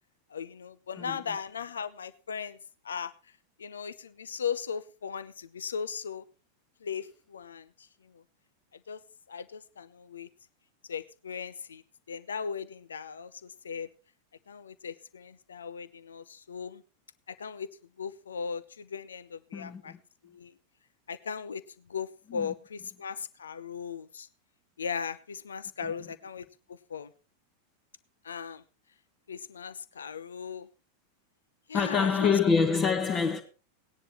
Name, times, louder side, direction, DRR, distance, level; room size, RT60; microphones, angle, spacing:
voice 1, 0.3-2.6 2.8-3.1 3.6-6.2 6.8-8.2 8.9-9.0 9.3-10.3 10.9-11.8 12.1-13.9 14.5-16.8 17.3-17.7 18.0-19.9 20.2-20.5 21.1-21.6 21.9-24.3 24.8-27.1 28.2-28.6 29.3-30.7 31.7-32.3, left 6 dB, 70° left, 0.7 m, -38 dB
voice 2, 19.5-20.0 22.3-22.5 31.7-33.4, left 5 dB, 30° left, 1.6 m, -26 dB
19.0 x 10.0 x 3.1 m
figure-of-eight pair, 90°, 0 cm